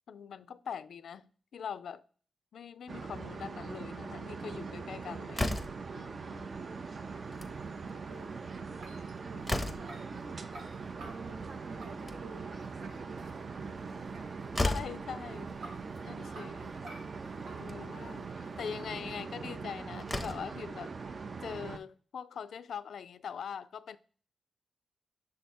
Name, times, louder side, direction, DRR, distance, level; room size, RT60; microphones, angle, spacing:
voice 1, 0.1-2.0 2.5-5.6 5.9-6.5 14.6-15.7 16.1-16.7 17.6-20.9 21.4-24.0, left 7 dB, 80° left, 0.3 m, -42 dB
sound 1, 2.9-21.8, right 4 dB, 45° right, 0.4 m, -42 dB
Slam, 5.3-5.9 7.2-7.6 7.9-8.0 8.3-8.4 8.9-10.1 11.8-12.5 14.1-14.2 14.5-15.0 16.2-16.3 16.7-16.8 17.6-17.8 19.5-19.6 20.0-20.6, left 2 dB, 10° left, 0.6 m, -34 dB
voice 2, 6.3-8.5 9.3-10.4 11.0-14.4, right 3 dB, 75° right, 0.9 m, -52 dB
sound 2, 7.0-19.1, right 2 dB, 90° right, 1.4 m, -55 dB
6.6 x 3.4 x 4.2 m
wide cardioid pair, 130°, 0 cm